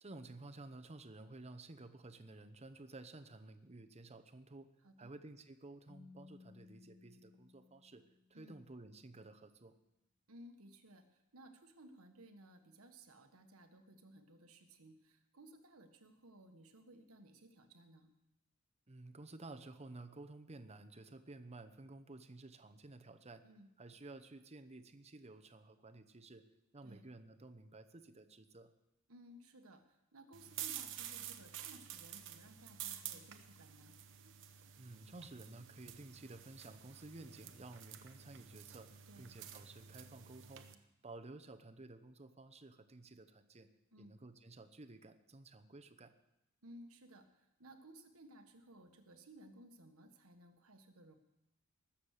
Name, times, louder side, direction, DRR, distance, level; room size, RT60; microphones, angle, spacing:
voice 1, 0.0-4.7 5.0-8.0 8.3-9.7 18.9-23.4 23.8-26.4 26.7-28.7 34.8-40.7 41.0-43.7 44.0-46.1, right 2 dB, 30° right, 9 dB, 0.9 m, -53 dB
voice 2, 4.8-5.1 8.3-8.6 10.3-18.1 23.4-23.7 26.8-27.1 29.1-34.0 39.1-39.3 43.9-44.1 46.6-51.2, right 1 dB, 80° right, 6 dB, 1.5 m, -59 dB
Keyboard (musical), 5.9-8.6, left 4 dB, 20° left, 0.5 m, -61 dB
sound 1, 30.3-40.7, right 10 dB, 60° right, 1.0 m, -50 dB
20.0 x 7.4 x 6.5 m, 0.90 s
head